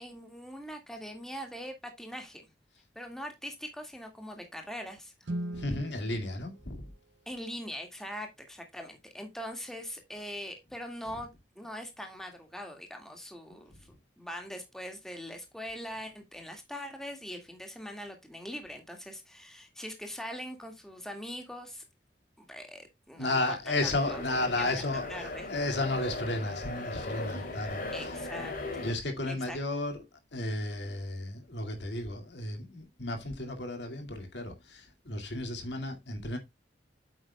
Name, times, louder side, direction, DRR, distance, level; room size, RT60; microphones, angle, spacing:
voice 1, 0.0-2.5 3.0-5.1 7.3-11.3 11.6-13.7 14.2-21.8 22.4-23.6 23.8-24.2 24.6-24.8 25.1-25.5 27.9-28.9 29.3-29.6, equal, 5° left, 1.9 m, -42 dB
Guitar, 5.2-7.8, right 1 dB, 75° right, 1.0 m, -41 dB
voice 2, 5.5-6.9 13.5-13.6 23.2-25.1 25.5-28.4 28.8-30.0 30.3-36.4, left 2 dB, 70° left, 2.2 m, -33 dB
sound 1, 23.8-28.9, left 2 dB, 55° left, 3.0 m, -38 dB
8.9 x 7.9 x 2.2 m
head